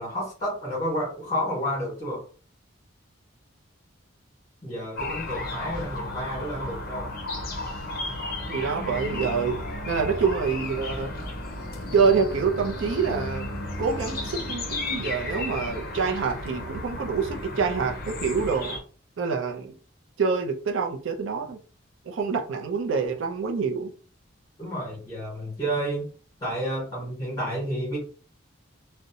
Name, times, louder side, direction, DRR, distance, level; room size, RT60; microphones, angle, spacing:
voice 1, 0.0-2.2 4.6-7.1 24.6-26.1 26.4-28.0, equal, 25° left, 1.2 m, -30 dB
sound 1, 5.0-18.8, left 2 dB, 45° left, 0.5 m, -33 dB
voice 2, 8.5-9.6 9.9-11.1 11.9-13.5 13.8-18.8 19.2-19.7 20.2-21.6 22.1-23.9, right 5 dB, 70° right, 0.4 m, -26 dB
2.6 x 2.1 x 2.7 m
head